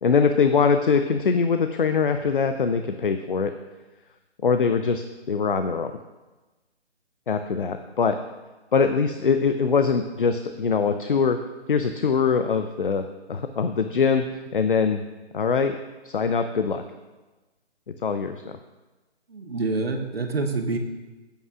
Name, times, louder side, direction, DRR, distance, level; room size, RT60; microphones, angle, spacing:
voice 1, 0.0-3.5 4.4-5.9 7.3-8.2 8.7-11.4 11.7-14.2 14.5-15.0 15.3-15.8 16.0-16.8 18.0-18.6, left 5 dB, 50° left, 8 dB, 0.6 m, -22 dB
voice 2, 19.3-20.8, right 3 dB, 60° right, 3 dB, 1.5 m, -27 dB
15.5 x 8.4 x 2.5 m, 1.2 s
figure-of-eight pair, 150°, 33 cm